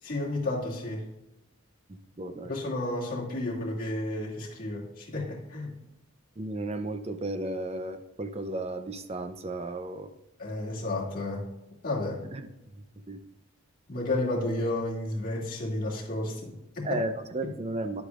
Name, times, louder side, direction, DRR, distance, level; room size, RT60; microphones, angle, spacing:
voice 1, 0.0-1.1 2.4-5.7 10.4-11.4 11.8-12.2 13.9-17.0 17.4-17.5, left 2 dB, 40° left, -5 dB, 2.3 m, -32 dB
voice 2, 1.9-2.5 6.4-10.1 12.3-12.5 13.1-13.2 16.8-18.0, right 2 dB, 30° right, 9 dB, 0.5 m, -34 dB
10.5 x 8.2 x 2.4 m, 0.93 s
head